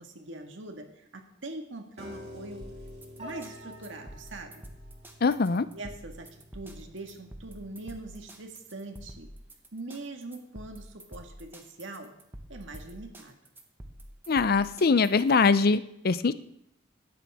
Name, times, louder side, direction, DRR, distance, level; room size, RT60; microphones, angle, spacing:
voice 1, 0.0-2.7 3.2-4.6 5.7-9.3 9.7-12.1 12.5-13.4, right 2 dB, 85° right, 4 dB, 1.7 m, -42 dB
Piano, 2.0-8.2, equal, 35° right, 3.4 m, -48 dB
sound 1, 2.6-15.5, right 1 dB, 10° right, 1.3 m, -47 dB
voice 2, 5.2-5.7 14.3-16.3, left 4 dB, 55° left, 15 dB, 0.5 m, -23 dB
16.5 x 12.5 x 3.6 m, 0.78 s
head